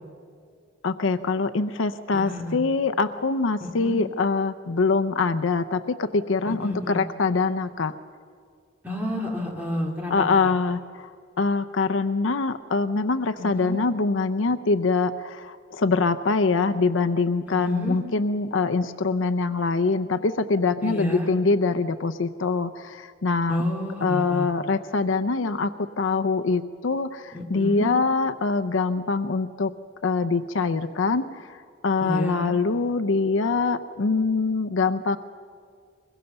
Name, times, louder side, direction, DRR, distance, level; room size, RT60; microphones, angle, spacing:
voice 1, 0.8-7.9 10.1-11.1 11.4-23.6 24.0-29.7 30.0-31.6 31.8-35.2, left 4 dB, 80° left, 9 dB, 0.6 m, -24 dB
voice 2, 2.1-2.6 3.6-4.0 6.5-7.0 8.8-10.3 13.4-13.8 17.5-18.0 20.8-21.3 23.5-24.5 27.3-27.9 32.0-32.5, left 1 dB, 10° right, -1 dB, 2.7 m, -30 dB
24.0 x 21.5 x 6.9 m, 2.1 s
head